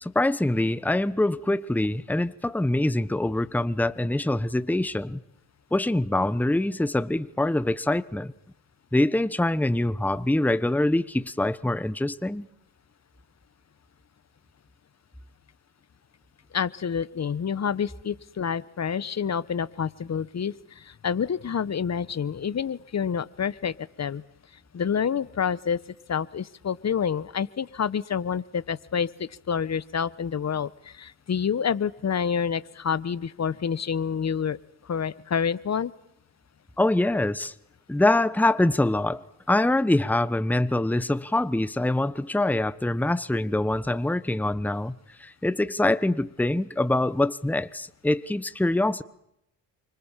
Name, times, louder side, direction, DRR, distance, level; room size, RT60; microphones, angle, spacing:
voice 1, 0.0-5.2 5.7-8.3 8.9-12.4 36.8-37.5 37.9-49.0, left 1 dB, 5° left, 1.2 m, -24 dB
voice 2, 16.5-24.2 24.7-25.8 26.1-34.6 34.8-35.9, left 7 dB, 35° left, 1.2 m, -28 dB
29.0 x 25.0 x 7.5 m
supercardioid pair, 60°, 46 cm